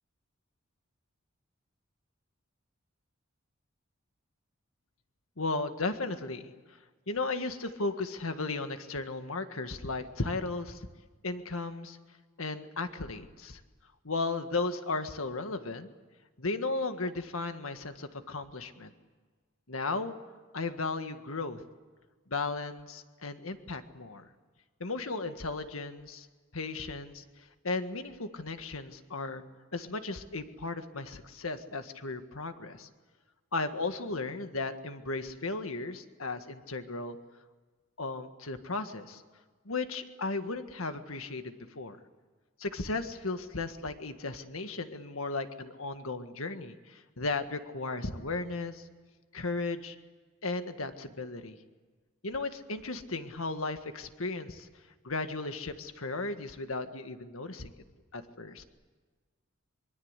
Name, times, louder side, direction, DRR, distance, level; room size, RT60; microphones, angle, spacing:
voice 1, 5.4-6.8 7.1-10.9 11.2-12.0 12.4-13.6 14.0-15.9 16.4-18.9 19.7-20.1 20.5-21.6 22.3-24.3 24.8-26.3 26.5-29.4 29.7-32.9 33.5-37.2 38.0-39.2 39.7-42.0 42.6-48.9 49.3-50.0 50.4-51.6 52.2-54.7 55.0-57.7 58.1-58.6, left 3 dB, 85° left, 8 dB, 1.8 m, -35 dB
25.0 x 24.0 x 8.2 m, 1.4 s
head